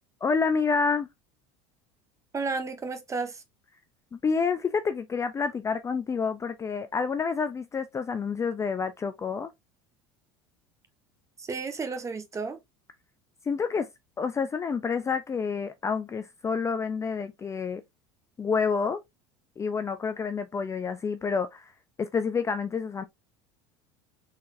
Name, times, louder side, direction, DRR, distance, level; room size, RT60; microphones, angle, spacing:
voice 1, 0.2-1.1 4.1-9.5 13.4-13.9 14.2-17.8 18.4-19.0 19.6-21.7 22.0-23.0, left 5 dB, 20° left, 0.4 m, -28 dB
voice 2, 2.3-3.4 11.4-12.6, right 4 dB, 20° right, 1.1 m, -32 dB
4.1 x 3.7 x 2.5 m
supercardioid pair, 95°, 13 cm